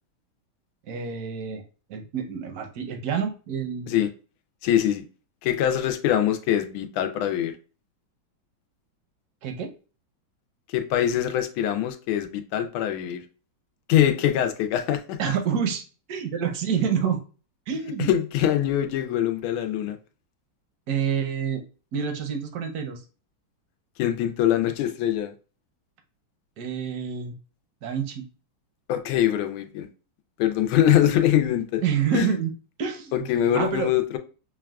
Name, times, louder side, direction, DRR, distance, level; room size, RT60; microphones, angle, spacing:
voice 1, 0.9-1.6 1.9-4.0 9.4-9.7 15.2-17.2 17.7-18.1 20.9-21.6 21.9-23.0 26.6-27.3 27.8-28.2 31.8-32.5 32.8-33.1 33.5-33.9, right 7 dB, 65° right, 0.9 m, -27 dB
voice 2, 4.6-5.0 5.4-7.5 10.7-13.2 13.9-15.2 18.0-20.0 24.0-25.3 28.9-29.9 30.4-31.8 32.1-32.3 33.1-34.2, left 11 dB, 85° left, 1.4 m, -23 dB
6.2 x 2.3 x 2.2 m
omnidirectional pair, 2.2 m